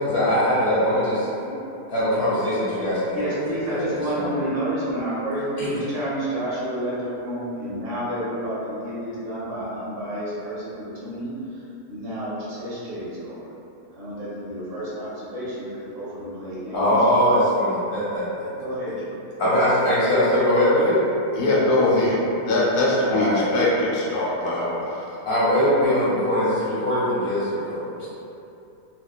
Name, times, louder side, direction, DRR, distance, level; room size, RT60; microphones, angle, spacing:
voice 1, 0.0-1.3 1.9-4.5 5.6-5.8 16.7-18.2 19.4-21.1 23.1-23.5 25.2-28.1, equal, 45° left, -10 dB, 0.9 m, -21 dB
voice 2, 3.1-11.3 11.9-13.5 13.9-16.9 18.3-19.0, right 1 dB, 50° right, -10 dB, 0.7 m, -30 dB
voice 3, 21.3-25.1, left 2 dB, 75° left, -6 dB, 1.1 m, -22 dB
2.8 x 2.2 x 2.2 m, 2.8 s
omnidirectional pair, 1.8 m